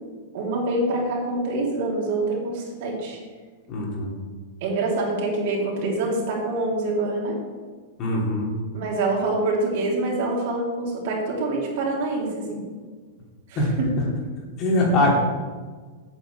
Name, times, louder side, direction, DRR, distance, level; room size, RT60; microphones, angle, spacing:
voice 1, 0.3-3.2 4.6-7.4 8.7-12.6 13.5-13.9, right 2 dB, 55° right, -3 dB, 3.5 m, -25 dB
voice 2, 3.7-4.1 8.0-8.5 13.6-13.8 14.6-15.1, left 1 dB, 30° left, -3 dB, 2.9 m, -22 dB
8.7 x 6.3 x 8.1 m, 1.5 s
supercardioid pair, 160°, 0 cm